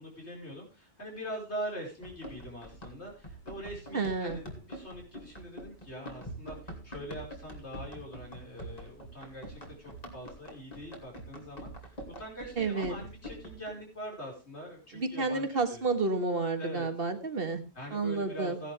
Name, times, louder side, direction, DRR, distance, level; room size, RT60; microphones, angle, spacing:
voice 1, 0.0-15.8 16.6-16.9 17.7-18.7, equal, 85° left, -1 dB, 5.5 m, -43 dB
Run, 2.0-13.7, right 1 dB, 35° left, 2.6 m, -45 dB
voice 2, 3.9-4.4 12.6-13.0 14.9-17.6 17.9-18.6, right 3 dB, 60° right, 7 dB, 1.7 m, -30 dB
16.0 x 11.0 x 3.4 m, 0.29 s
omnidirectional pair, 1.1 m